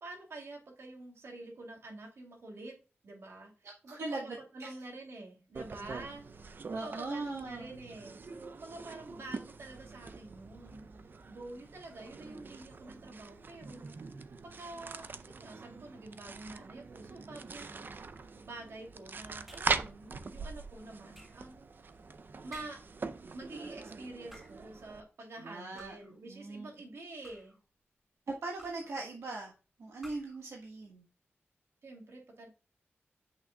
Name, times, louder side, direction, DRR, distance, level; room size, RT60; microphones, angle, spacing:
voice 1, 0.0-2.7 3.0-3.5 3.8-10.8 11.3-13.8 14.6-15.1 15.4-17.9 18.4-21.7 22.4-22.8 23.3-27.5 31.8-32.5, right 2 dB, 70° right, 1 dB, 2.7 m, -47 dB
voice 2, 3.6-4.8 6.7-7.7 25.4-25.9 26.3-26.7 28.3-29.5 29.8-31.0, right 3 dB, 90° right, -1 dB, 1.3 m, -40 dB
sound 1, 5.5-25.0, right 4 dB, 45° right, 0.5 m, -43 dB
sound 2, 17.5-18.0 19.5-19.9 21.1-21.5 22.5-23.0 24.1-24.7 25.8-26.2 27.0-27.6 28.6-29.0 30.0-30.4, equal, 10° right, 2.5 m, -55 dB
8.2 x 6.5 x 2.2 m, 0.34 s
wide cardioid pair, 140°, 5 cm